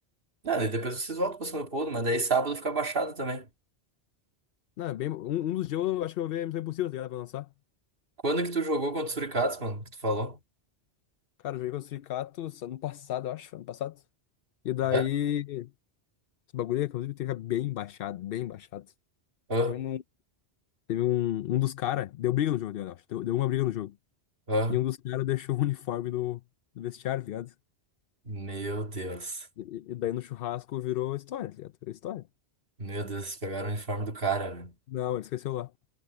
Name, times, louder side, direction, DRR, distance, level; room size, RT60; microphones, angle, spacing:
voice 1, 0.4-3.4 8.2-10.4 14.9-15.1 19.5-19.8 24.5-24.8 28.3-29.5 32.8-34.7, right 2 dB, 55° right, 2.2 m, -30 dB
voice 2, 4.8-7.5 11.4-14.0 14.6-15.7 16.5-18.8 19.7-20.0 20.9-23.9 24.7-26.4 26.8-27.5 29.6-32.2 34.9-35.7, left 13 dB, 65° left, 0.7 m, -31 dB
omnidirectional pair, 1.2 m